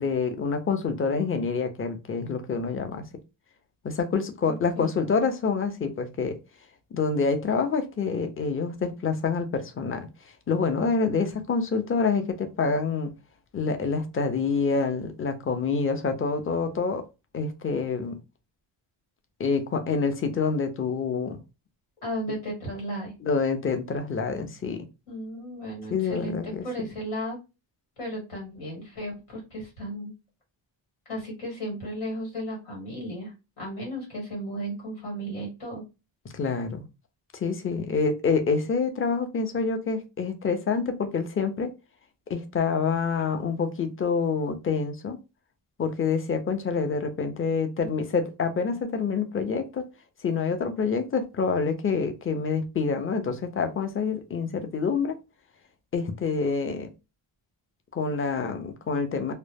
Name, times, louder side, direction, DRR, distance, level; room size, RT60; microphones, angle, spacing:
voice 1, 0.0-3.0 3.8-6.4 6.9-10.1 10.5-13.1 13.5-17.0 17.3-18.2 19.4-21.4 23.2-24.8 25.9-26.6 36.3-36.8 37.3-41.7 42.3-45.2 45.8-49.9 50.2-55.2 55.9-56.9 57.9-59.3, left 5 dB, 25° left, 0.5 m, -27 dB
voice 2, 4.4-4.8 22.0-23.1 25.1-27.4 28.0-30.1 31.0-35.8, equal, 90° left, 1.3 m, -35 dB
2.0 x 2.0 x 3.2 m
cardioid pair, 60°, 50 cm